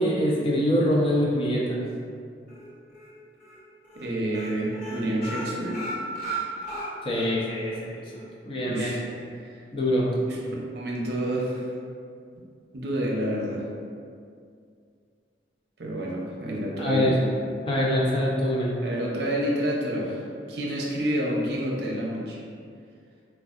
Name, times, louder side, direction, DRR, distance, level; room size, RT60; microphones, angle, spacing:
voice 1, 0.0-1.8 7.0-7.7 8.4-8.9 9.7-10.1 16.8-17.2 17.7-18.8, equal, 30° left, -4 dB, 0.5 m, -24 dB
sound 1, 2.5-3.1 3.4-3.6 3.8-4.1 4.3-7.3 7.7-7.8 8.1-8.2, right 2 dB, 45° left, 0.9 m, -35 dB
voice 2, 4.0-5.8 8.6-9.0 9.4-10.0 10.3-11.7 12.7-13.6 15.8-17.2 18.8-20.2 20.5-22.4, right 1 dB, 70° right, -3 dB, 0.6 m, -29 dB
4.4 x 2.3 x 2.4 m, 2.3 s
head